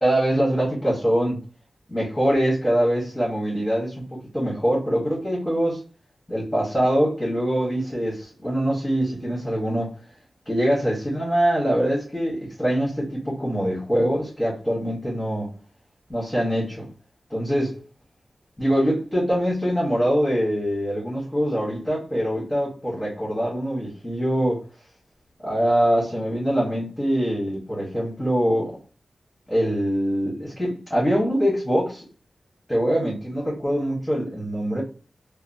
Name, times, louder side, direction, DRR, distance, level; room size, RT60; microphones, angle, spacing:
voice 1, 0.0-1.4 1.9-5.8 6.3-9.9 10.5-15.5 16.1-16.9 17.3-17.7 18.6-24.6 25.4-28.8 29.5-32.0 32.7-34.8, equal, 10° left, -6 dB, 1.0 m, -23 dB
2.7 x 2.1 x 2.6 m, 0.36 s
wide cardioid pair, 110°, 0 cm